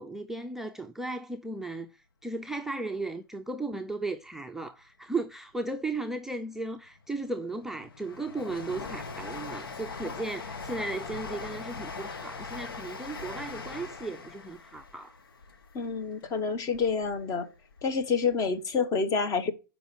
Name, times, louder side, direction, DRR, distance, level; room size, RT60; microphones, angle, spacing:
voice 1, 0.0-15.2, right 2 dB, 5° right, 0.5 m, -36 dB
Train, 7.0-17.1 17.6-18.5 18.7-18.8, left 4 dB, 80° left, 1.5 m, -41 dB
voice 2, 15.7-17.5 17.8-19.5, left 5 dB, 30° left, 1.3 m, -28 dB
6.8 x 5.2 x 6.2 m
hypercardioid pair, 115°, 12 cm